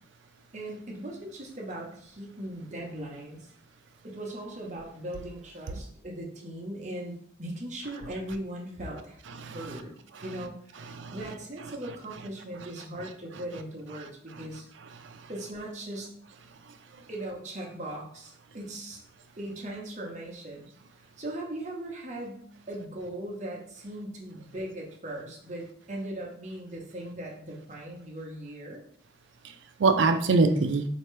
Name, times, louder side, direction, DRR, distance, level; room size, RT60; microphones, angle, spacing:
voice 1, 0.5-3.5 4.0-9.2 9.5-10.0 10.2-14.7 15.3-16.1 17.1-19.0 19.4-20.7 21.0-28.8, right 1 dB, 40° right, 0.8 m, -39 dB
voice 2, 9.3-9.8 10.1-10.2 10.9-11.2 15.0-15.3 16.9-17.0 29.4-29.5 29.8-30.9, right 3 dB, 80° right, 0.4 m, -25 dB
4.4 x 2.8 x 3.1 m
head